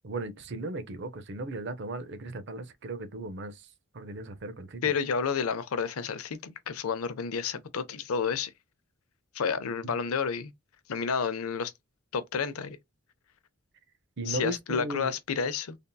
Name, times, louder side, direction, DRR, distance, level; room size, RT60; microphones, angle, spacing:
voice 1, 0.0-3.7 3.9-4.8 9.8-9.9 14.2-15.1, right 2 dB, 50° right, 0.5 m, -36 dB
voice 2, 4.8-8.5 9.3-10.5 10.9-11.7 12.1-12.8 14.3-15.8, left 6 dB, 80° left, 0.5 m, -30 dB
3.4 x 2.6 x 2.2 m
head